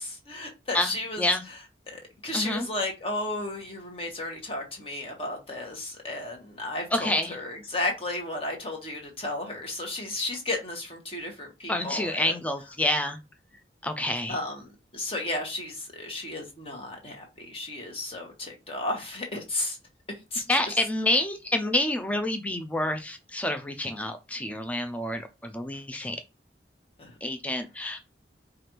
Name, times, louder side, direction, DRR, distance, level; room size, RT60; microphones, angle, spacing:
voice 1, 0.0-1.3 1.9-12.3 14.3-19.8 20.3-20.7 27.0-27.1, left 2 dB, 30° left, 1.1 m, -33 dB
voice 2, 2.3-2.7 6.9-7.4 11.7-13.2 13.8-14.4 20.5-26.2 27.2-28.0, left 1 dB, 10° left, 0.4 m, -28 dB
4.9 x 2.5 x 3.0 m
head